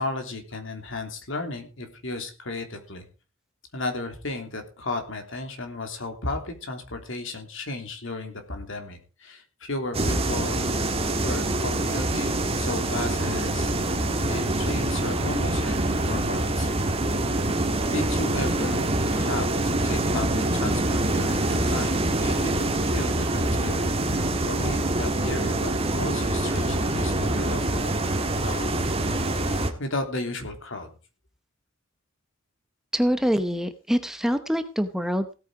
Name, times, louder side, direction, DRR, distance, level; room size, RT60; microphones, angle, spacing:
voice 1, 0.0-3.1 3.7-10.8 11.2-16.7 17.9-27.9 28.2-28.8 29.8-30.9, left 2 dB, 65° left, 5 dB, 3.2 m, -34 dB
sound 1, 9.9-29.7, right 1 dB, 30° right, 1.8 m, -25 dB
voice 2, 32.9-35.3, equal, ahead, 9 dB, 0.8 m, -25 dB
17.0 x 8.9 x 4.9 m, 0.34 s
head